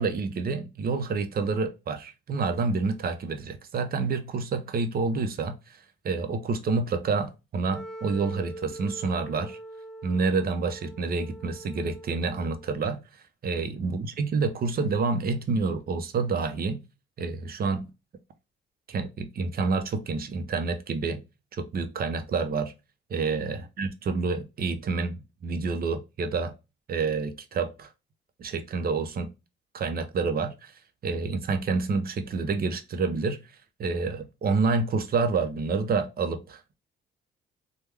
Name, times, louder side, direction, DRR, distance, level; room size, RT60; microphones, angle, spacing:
voice 1, 0.0-9.6 10.0-13.0 13.4-16.8 17.2-17.9 18.9-21.2 21.5-22.7 23.1-26.5 26.9-27.9 28.4-29.3 29.7-30.7 31.0-33.4 33.8-36.7, right 4 dB, 50° right, 0.7 m, -28 dB
Wind instrument woodwind instrument, 7.7-12.8, right 1 dB, 5° left, 0.6 m, -43 dB
3.4 x 2.2 x 3.2 m
cardioid pair, 90°, 20 cm